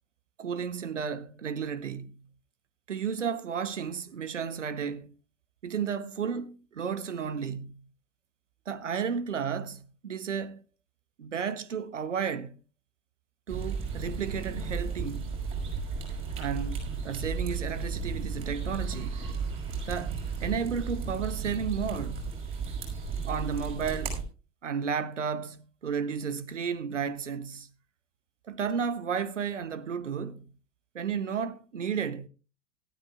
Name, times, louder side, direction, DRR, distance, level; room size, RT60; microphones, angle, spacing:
voice 1, 0.4-2.3 2.9-5.1 5.6-7.9 8.7-10.6 11.2-12.6 13.5-15.4 16.4-19.2 19.9-22.2 23.3-24.2 24.6-27.7 28.4-30.5 30.9-32.3, right 6 dB, 75° right, 0.9 m, -33 dB
sound 1, 13.5-24.2, right 5 dB, 35° right, 5.7 m, -34 dB
19.0 x 12.5 x 2.4 m
figure-of-eight pair, 80°, 37 cm